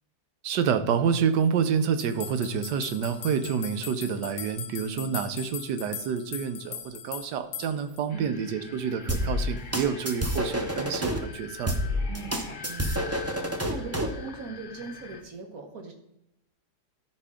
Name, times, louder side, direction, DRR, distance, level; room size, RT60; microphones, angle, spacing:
voice 1, 0.4-11.7, right 7 dB, 90° right, 10 dB, 1.4 m, -28 dB
sound 1, 2.0-8.0, left 8 dB, 75° left, 1.1 m, -40 dB
sound 2, 8.1-15.2, left 5 dB, 40° left, 0.8 m, -44 dB
sound 3, 9.1-11.2 11.7-14.2, equal, 20° right, 0.4 m, -28 dB
voice 2, 12.1-15.9, right 4 dB, 60° right, 3 dB, 1.9 m, -40 dB
13.5 x 4.7 x 3.7 m, 0.84 s
omnidirectional pair, 1.8 m